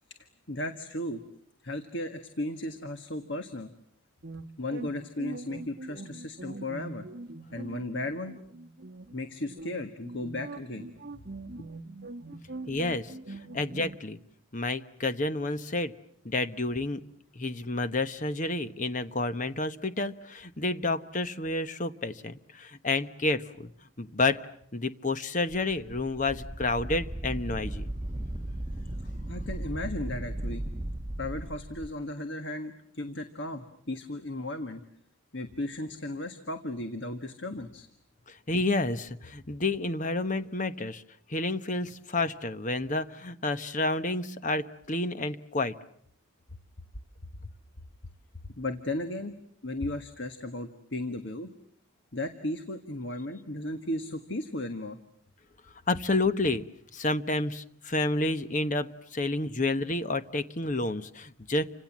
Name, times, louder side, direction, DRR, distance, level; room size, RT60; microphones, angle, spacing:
voice 1, 0.5-1.2 1.6-3.7 4.6-7.1 7.5-8.4 9.1-11.3 29.3-30.6 31.2-34.8 35.3-37.9 48.6-49.3 49.6-51.5 52.1-55.0, left 1 dB, 60° left, 8 dB, 1.6 m, -35 dB
sound 1, 4.2-14.0, right 2 dB, 50° right, 1.3 m, -42 dB
voice 2, 12.7-14.2 14.5-15.9 16.2-17.0 17.3-23.7 24.0-24.4 24.7-27.9 38.3-41.0 41.3-45.7 55.9-56.6 56.9-61.6, left 2 dB, 35° left, 12 dB, 1.1 m, -30 dB
Wind, 25.5-31.9, right 1 dB, 20° right, 1.1 m, -36 dB
30.0 x 26.0 x 7.4 m, 0.68 s
head